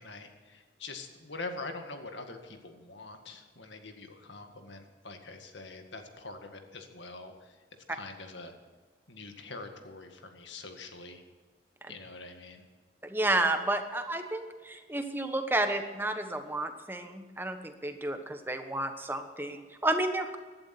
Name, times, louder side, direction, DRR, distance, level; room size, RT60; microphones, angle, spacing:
voice 1, 0.0-7.6 7.9-8.5 9.1-11.2 11.9-12.6, left 3 dB, 75° left, 5 dB, 1.9 m, -44 dB
voice 2, 13.0-20.4, right 2 dB, 10° right, 7 dB, 1.1 m, -31 dB
17.0 x 11.5 x 6.0 m, 1.4 s
head